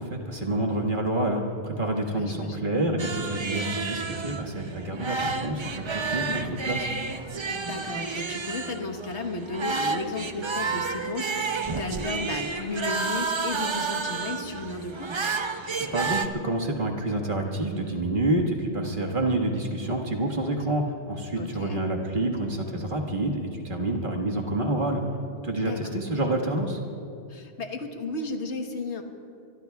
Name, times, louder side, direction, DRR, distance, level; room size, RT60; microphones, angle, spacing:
voice 1, 0.0-6.9 15.8-25.0 25.4-26.8, right 1 dB, 50° right, 1 dB, 1.8 m, -28 dB
voice 2, 2.1-2.7 6.3-6.6 7.5-15.1 21.3-21.8 25.6-25.9 27.3-29.0, left 3 dB, 85° left, 4 dB, 1.6 m, -34 dB
sound 1, 3.0-16.3, right 4 dB, 30° right, 0.6 m, -31 dB
24.0 x 23.5 x 2.3 m, 2.5 s
omnidirectional pair, 1.1 m